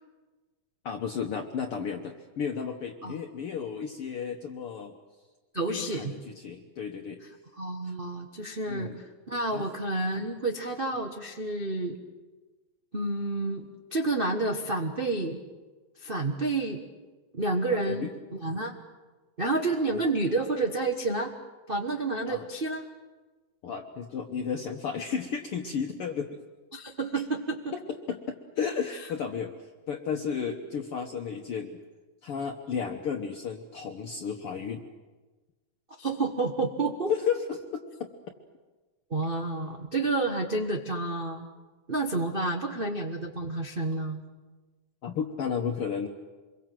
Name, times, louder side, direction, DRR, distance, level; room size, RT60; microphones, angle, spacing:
voice 1, 0.8-4.9 5.7-7.2 8.7-9.0 9.5-9.6 17.7-18.1 22.3-22.5 23.6-26.4 27.7-27.8 28.1-28.2 28.6-29.5 29.9-31.8 32.2-34.9 37.1-37.8 45.0-46.1, left 6 dB, 60° left, 3 dB, 1.7 m, -33 dB
voice 2, 5.5-6.1 7.6-12.0 12.9-15.4 16.0-16.8 17.3-18.8 19.4-21.3 21.7-22.9 26.7-27.7 36.0-37.1 39.1-41.5 41.9-44.2, right 2 dB, 85° right, 2 dB, 0.4 m, -30 dB
26.0 x 22.5 x 7.6 m, 1.3 s
omnidirectional pair, 3.4 m